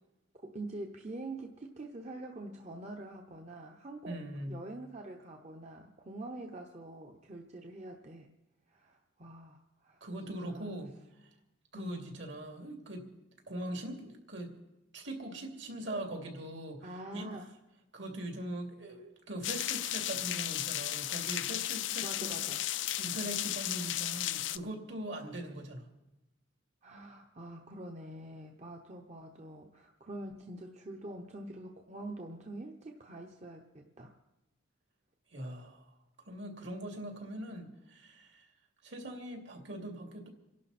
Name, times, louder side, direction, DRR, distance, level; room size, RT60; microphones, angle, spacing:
voice 1, 0.3-8.3 8.7-10.7 11.7-12.1 14.0-14.1 16.8-17.5 22.0-22.7 26.8-34.2, right 2 dB, 35° right, 3 dB, 0.9 m, -45 dB
voice 2, 4.0-4.6 10.0-11.3 11.7-13.1 13.5-14.5 14.9-17.3 17.9-22.5 23.0-25.9 35.3-35.8 36.3-38.5 38.8-40.3, right 1 dB, 65° right, 2 dB, 2.8 m, -41 dB
sound 1, 19.4-24.6, left 13 dB, 70° left, 0.5 m, -34 dB
27.5 x 11.5 x 4.3 m, 0.95 s
head